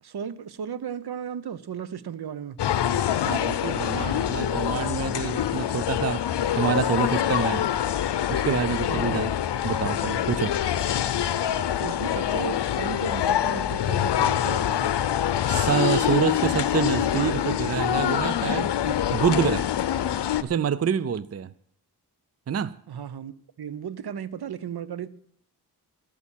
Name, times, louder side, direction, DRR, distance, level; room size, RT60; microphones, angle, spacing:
voice 1, 0.0-2.6 8.9-9.3 11.8-14.9 22.9-23.3 23.6-25.1, right 8 dB, 70° right, 0.8 m, -35 dB
sound 1, 2.6-20.4, left 10 dB, 85° left, 0.7 m, -25 dB
voice 2, 3.3-6.2 6.6-7.7 8.3-9.3 9.6-10.6 15.5-19.7 20.4-21.5 22.5-22.8, right 7 dB, 40° right, 0.5 m, -27 dB
12.0 x 8.4 x 9.0 m
wide cardioid pair, 85°, 40 cm